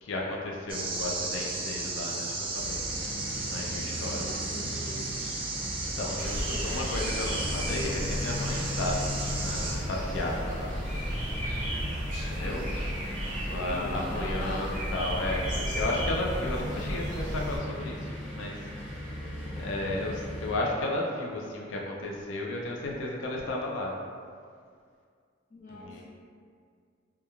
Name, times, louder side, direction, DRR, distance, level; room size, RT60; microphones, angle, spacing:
voice 1, 0.0-2.8 3.5-4.3 6.0-10.7 12.2-12.7 13.4-18.6 19.5-23.9 25.7-26.0, left 1 dB, 75° left, -1 dB, 0.4 m, -33 dB
sound 1, 0.7-9.7, right 3 dB, 25° right, 0.3 m, -34 dB
sound 2, 2.5-20.5, left 1 dB, 5° left, 0.7 m, -38 dB
voice 2, 3.9-5.1 6.5-6.8 12.4-12.5 13.5-14.6 25.5-26.0, left 1 dB, 40° left, -10 dB, 0.8 m, -41 dB
sound 3, 6.2-17.6, equal, 45° right, 0.8 m, -34 dB
2.9 x 2.2 x 2.3 m, 2.1 s
head